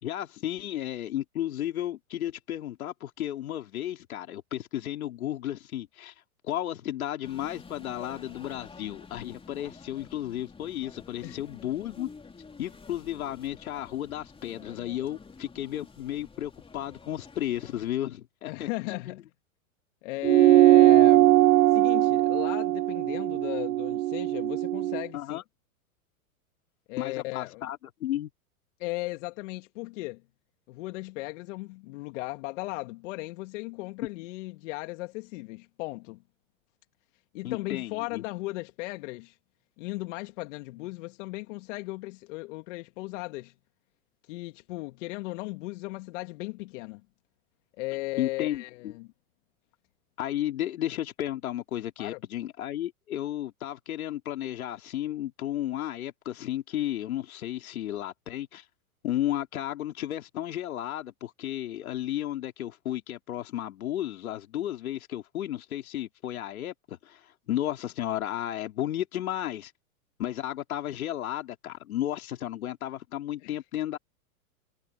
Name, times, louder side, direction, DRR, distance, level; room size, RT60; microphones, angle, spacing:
voice 1, 0.0-6.1 6.4-12.1 12.6-19.2 25.1-25.4 27.0-28.3 37.4-38.2 48.2-48.9 50.2-58.6 59.0-69.7 70.2-74.0, left 12 dB, 75° left, 3.4 m, -33 dB
sound 1, 7.2-17.9, left 4 dB, 10° left, 3.2 m, -49 dB
voice 2, 18.5-19.2 20.0-21.4 21.7-25.4 26.9-27.7 28.8-30.2 30.7-36.2 37.3-39.4 39.8-43.5 44.3-47.0 47.8-49.1 52.0-52.2 73.4-73.5, left 22 dB, 55° left, 2.3 m, -36 dB
sound 2, 20.2-25.0, right 15 dB, 70° right, 0.8 m, -20 dB
hypercardioid pair, 110°, 43 cm